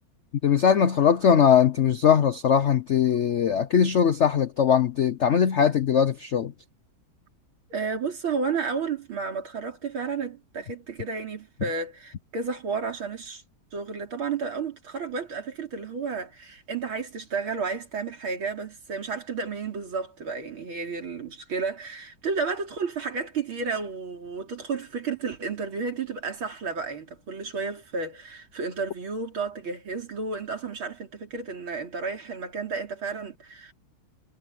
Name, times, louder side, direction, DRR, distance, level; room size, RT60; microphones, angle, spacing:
voice 1, 0.4-6.5, left 8 dB, 90° left, 0.6 m, -20 dB
voice 2, 7.7-13.4 13.7-33.7, right 5 dB, 90° right, 4.2 m, -32 dB
omnidirectional pair, 2.2 m